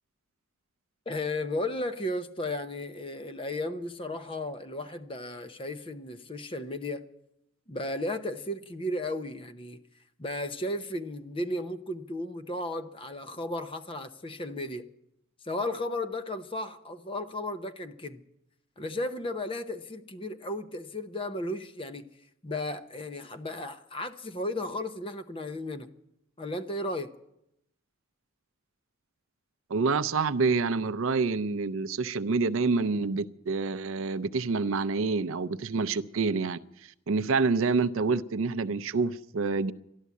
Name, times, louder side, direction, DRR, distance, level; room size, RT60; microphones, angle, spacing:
voice 1, 1.1-7.1 7.7-9.8 10.2-14.8 15.4-18.2 18.8-22.1 22.4-25.9 26.4-27.1, left 1 dB, 25° left, 0.7 m, -34 dB
voice 2, 29.7-36.6 37.1-39.7, right 4 dB, 70° right, 0.5 m, -27 dB
13.0 x 12.0 x 8.3 m
head